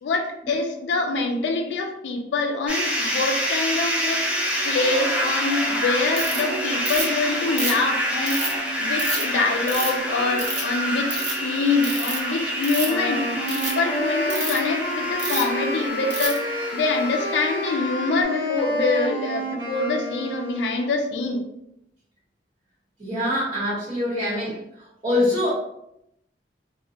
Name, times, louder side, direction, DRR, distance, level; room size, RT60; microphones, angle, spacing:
voice 1, 0.0-4.2 4.7-8.5 8.8-16.4 16.7-21.4, left 3 dB, 80° left, 3 dB, 0.3 m, -25 dB
sound 1, 2.7-18.2, equal, 5° right, 0.4 m, -27 dB
Ratchet pawl, 6.2-6.4 6.9-7.2 7.6-8.5 9.0-9.2 9.7-10.0 10.4-10.7 11.0-11.3 11.8-12.2 12.6-13.0 13.4-13.7 14.3-14.6 15.2-15.5 16.1-16.4, right 2 dB, 50° right, 0.7 m, -28 dB
Wind instrument woodwind instrument, 12.8-20.9, equal, 85° right, 0.7 m, -29 dB
voice 2, 23.0-24.6 25.0-25.5, left 1 dB, 30° right, -11 dB, 1.1 m, -24 dB
2.1 x 2.1 x 2.7 m, 0.80 s
head